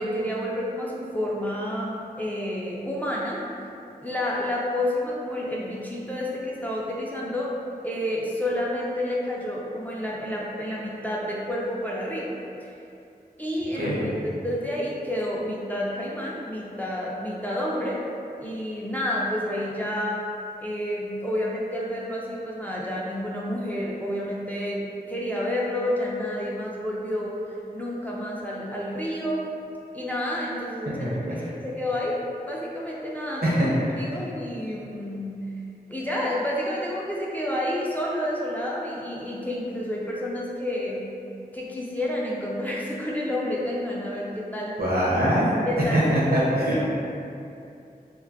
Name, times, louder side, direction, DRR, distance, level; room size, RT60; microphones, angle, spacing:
voice 1, 0.0-3.4 4.0-7.5 7.8-12.3 12.6-12.7 13.4-18.0 18.4-20.2 20.6-27.4 27.7-29.5 29.9-32.2 32.5-33.5 33.9-35.4 35.9-41.1 41.5-44.7 45.7-46.4 46.8-46.9, left 1 dB, 10° left, -5 dB, 0.3 m, -29 dB
voice 2, 13.8-14.1 30.9-31.4 33.4-33.7 44.8-45.5 45.9-46.8, equal, 65° right, -7 dB, 0.7 m, -23 dB
2.4 x 2.2 x 2.4 m, 2.6 s
wide cardioid pair, 45°, 17 cm